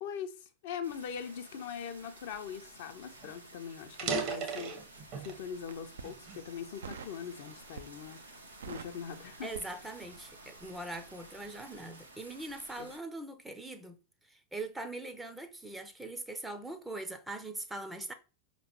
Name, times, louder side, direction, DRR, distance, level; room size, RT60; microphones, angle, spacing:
voice 1, 0.0-4.8 5.2-8.2 8.7-9.5 12.8-12.9, left 7 dB, 50° left, 0.6 m, -41 dB
sound 1, 0.8-13.0, right 2 dB, 80° right, 0.8 m, -53 dB
sound 2, 3.2-3.3 3.8-5.5 6.0-7.3 7.9-8.1 8.8-10.8, right 4 dB, 40° right, 0.9 m, -38 dB
Crackle, 3.9-5.0 5.6-6.1 6.8-7.2 7.6-8.1 8.4-10.3 10.6-10.8, right 6 dB, 65° right, 0.4 m, -47 dB
voice 2, 9.4-14.0 14.2-18.1, right 2 dB, 5° right, 0.5 m, -42 dB
5.1 x 3.0 x 2.8 m
figure-of-eight pair, 90°, 0 cm